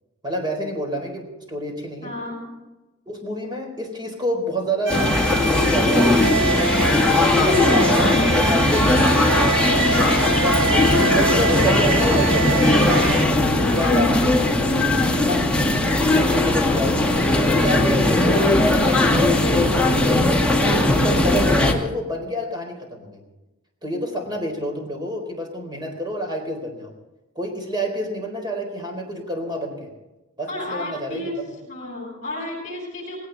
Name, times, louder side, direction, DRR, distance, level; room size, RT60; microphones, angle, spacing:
voice 1, 0.2-2.1 3.1-5.0 5.5-9.2 10.3-15.4 16.1-20.3 20.9-23.2 23.8-26.9 27.4-29.9 30.4-31.3, equal, 20° right, 3 dB, 4.1 m, -28 dB
voice 2, 2.0-2.4 10.5-10.9 30.5-31.4 31.7-33.2, left 1 dB, 35° left, 0 dB, 7.9 m, -32 dB
sound 1, 4.9-21.7, left 2 dB, 5° left, 1.9 m, -18 dB
sound 2, 4.9-13.3, right 3 dB, 60° right, 1.3 m, -25 dB
19.0 x 18.0 x 4.0 m, 1.0 s
head